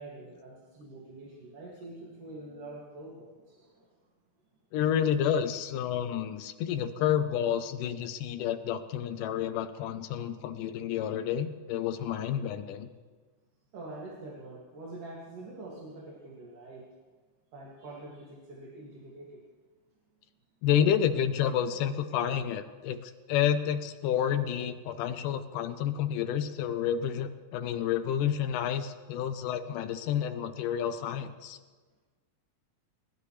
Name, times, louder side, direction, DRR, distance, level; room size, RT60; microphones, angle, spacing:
voice 1, 0.0-3.9 13.7-16.8 17.5-19.4, right 2 dB, 85° right, -5 dB, 4.1 m, -45 dB
voice 2, 4.7-12.9 20.6-31.6, left 9 dB, 90° left, 8 dB, 2.4 m, -30 dB
29.5 x 14.5 x 3.3 m, 1.4 s
omnidirectional pair, 3.6 m